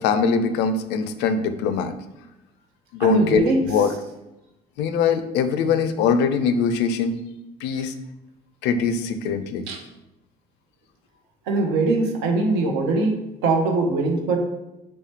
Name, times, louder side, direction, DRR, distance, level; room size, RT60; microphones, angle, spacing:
voice 1, 0.0-1.9 2.9-4.0 4.8-7.2 7.6-7.9 8.6-9.6, left 5 dB, 70° left, 10 dB, 0.4 m, -22 dB
voice 2, 3.0-3.7 7.7-7.8 9.7-9.8 11.5-13.1 13.4-14.4, right 3 dB, 80° right, 2 dB, 0.7 m, -21 dB
3.1 x 3.0 x 3.3 m, 0.94 s
hypercardioid pair, 60°, 18 cm